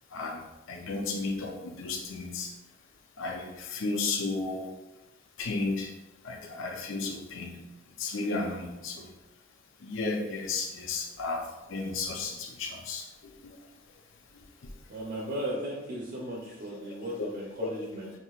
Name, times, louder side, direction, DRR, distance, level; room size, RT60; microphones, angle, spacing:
voice 1, 0.1-2.5 3.2-4.7 5.4-5.9 6.2-7.6 8.0-9.1 9.8-13.6 17.2-17.3 17.6-17.7, left 3 dB, 65° left, 1 dB, 0.5 m, -33 dB
voice 2, 14.9-18.1, equal, 50° right, -4 dB, 0.7 m, -36 dB
6.0 x 2.8 x 2.4 m, 1.0 s
head